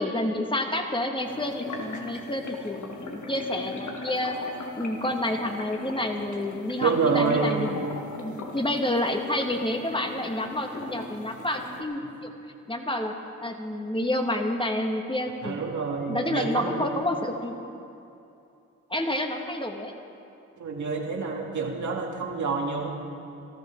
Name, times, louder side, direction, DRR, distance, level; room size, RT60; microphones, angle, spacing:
voice 1, 0.0-4.4 4.8-7.9 8.2-12.3 12.7-13.1 13.4-15.6 16.1-17.6 18.9-19.9, left 1 dB, 15° left, 3 dB, 1.9 m, -29 dB
sound 1, 1.2-11.8, left 3 dB, 65° left, 1.7 m, -40 dB
voice 2, 6.7-7.7 12.0-12.1 15.4-16.9 20.6-22.9, right 4 dB, 65° right, 0 dB, 2.2 m, -27 dB
17.5 x 14.0 x 4.6 m, 2.7 s
supercardioid pair, 45°, 31 cm